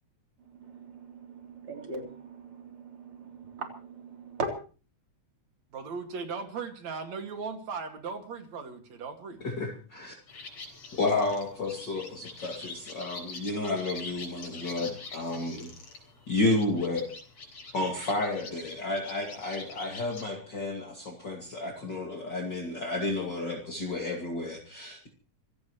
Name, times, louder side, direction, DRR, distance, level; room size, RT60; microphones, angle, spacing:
voice 1, 0.6-4.5, right 3 dB, 45° right, 2 dB, 4.3 m, -39 dB
voice 2, 5.7-9.4, right 5 dB, 65° right, 5 dB, 3.4 m, -37 dB
voice 3, 9.4-10.1 10.9-15.7 16.3-17.1 17.7-25.1, left 2 dB, 40° left, 0 dB, 2.8 m, -31 dB
sound 1, 10.3-20.2, left 3 dB, 60° left, 5.4 m, -45 dB
27.0 x 16.0 x 3.1 m, 0.37 s
omnidirectional pair, 3.4 m